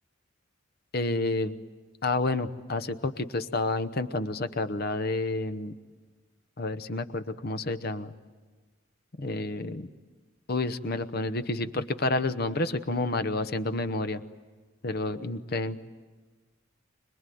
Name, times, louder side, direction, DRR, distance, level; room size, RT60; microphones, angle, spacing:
voice 1, 0.9-1.6 2.0-5.8 6.6-8.1 9.2-9.9 10.5-14.2 14.8-15.8, left 2 dB, 50° left, 12 dB, 0.9 m, -29 dB
26.0 x 20.5 x 9.3 m, 1.3 s
head